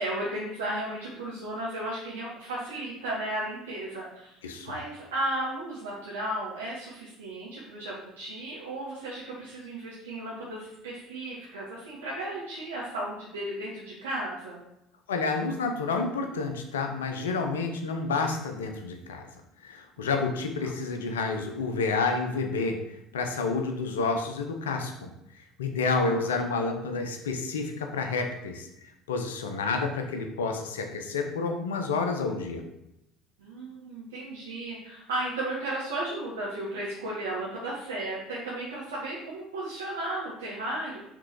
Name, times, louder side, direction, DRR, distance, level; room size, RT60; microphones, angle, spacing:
voice 1, 0.0-4.4 4.6-14.6 20.6-20.7 26.0-26.3 33.4-41.0, right 1 dB, 80° right, -6 dB, 1.3 m, -34 dB
voice 2, 4.4-4.7 15.1-19.3 19.6-28.7 29.1-32.7, left 4 dB, 80° left, 4 dB, 0.8 m, -29 dB
6.0 x 3.7 x 4.7 m, 0.84 s
hypercardioid pair, 65°, 0 cm